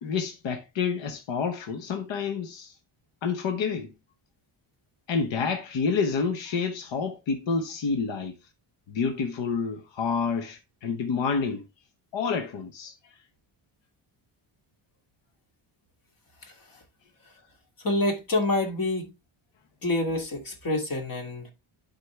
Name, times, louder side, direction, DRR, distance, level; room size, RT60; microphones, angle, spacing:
voice 1, 0.0-2.7 3.2-3.9 5.1-8.3 8.9-11.6 12.1-12.9, left 5 dB, 65° left, 1.1 m, -28 dB
voice 2, 16.4-16.8 17.8-19.1 19.8-21.5, left 2 dB, 45° left, 2.3 m, -27 dB
11.0 x 4.3 x 3.3 m
wide cardioid pair, 155°, 49 cm